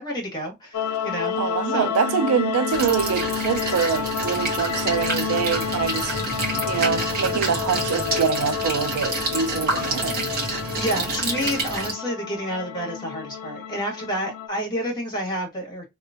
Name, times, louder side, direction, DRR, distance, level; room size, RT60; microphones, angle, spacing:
voice 1, 0.0-1.4 1.7-1.9 10.7-15.8, equal, 20° left, 1.5 m, -29 dB
sound 1, 0.7-14.5, left 8 dB, 90° left, 0.4 m, -30 dB
voice 2, 1.3-6.2 6.7-10.4, right 6 dB, 75° right, 0.3 m, -25 dB
sound 2, 2.7-11.9, right 3 dB, 40° right, 1.4 m, -28 dB
3.1 x 2.9 x 2.4 m
head